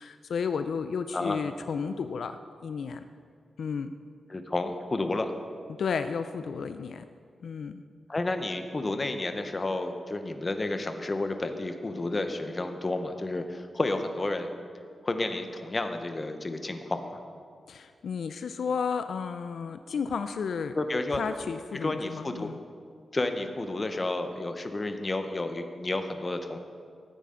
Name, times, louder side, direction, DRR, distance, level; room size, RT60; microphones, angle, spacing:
voice 1, 0.0-2.4 2.6-3.1 3.6-3.9 5.8-7.1 7.4-7.8 17.7-20.8 21.1-22.6, left 6 dB, 75° left, 9 dB, 0.4 m, -32 dB
voice 2, 4.3-5.3 8.1-14.5 15.0-17.2 20.8-21.2 21.8-22.5 23.1-26.6, left 2 dB, 30° left, 7 dB, 0.8 m, -31 dB
13.5 x 9.0 x 3.8 m, 2.1 s
wide cardioid pair, 105°, 0 cm